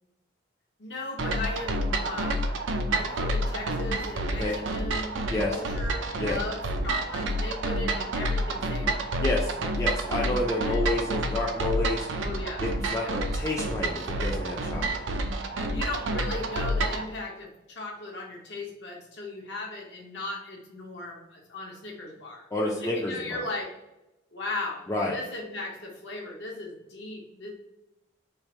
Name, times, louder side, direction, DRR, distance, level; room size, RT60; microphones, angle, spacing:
voice 1, 0.8-2.4 2.9-5.2 5.5-9.1 10.6-10.9 12.2-12.6 13.0-13.2 15.5-22.4 22.8-23.7 24.3-24.8 25.1-27.5, left 2 dB, 60° left, -1 dB, 0.9 m, -37 dB
sound 1, 1.2-17.1, right 1 dB, 75° right, 0.5 m, -29 dB
voice 2, 9.2-12.1 12.6-15.2 22.5-23.4 24.9-25.2, left 1 dB, 15° left, -2 dB, 0.4 m, -29 dB
3.2 x 2.5 x 4.3 m, 0.93 s
head